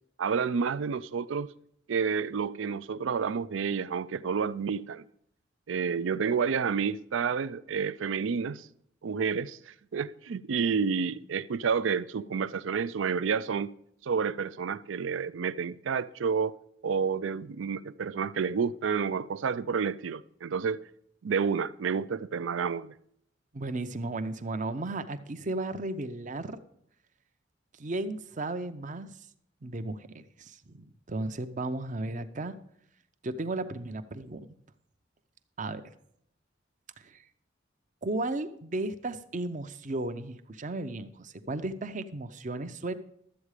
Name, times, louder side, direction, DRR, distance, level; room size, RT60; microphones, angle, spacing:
voice 1, 0.2-1.5 1.9-5.0 5.7-8.7 9.0-13.7 14.0-16.5 16.8-20.8 21.2-22.9, right 6 dB, 75° right, 0.4 m, -30 dB
voice 2, 23.5-26.6 27.8-29.2 29.6-32.5 33.2-34.4 35.6-35.8 37.0-37.2 38.0-42.9, right 2 dB, 40° right, 0.7 m, -35 dB
12.5 x 8.2 x 4.9 m
head